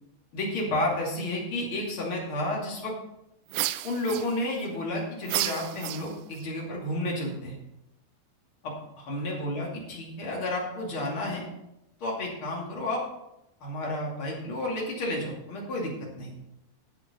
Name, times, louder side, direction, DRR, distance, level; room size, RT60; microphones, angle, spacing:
voice 1, 0.3-2.9 3.8-7.6 8.6-11.5 12.0-13.0 13.6-16.3, left 1 dB, 35° left, -3 dB, 2.5 m, -31 dB
sound 1, 3.5-4.7 5.3-6.4, right 16 dB, 85° right, 2.7 m, -32 dB
11.0 x 7.9 x 5.5 m, 0.88 s
omnidirectional pair, 5.5 m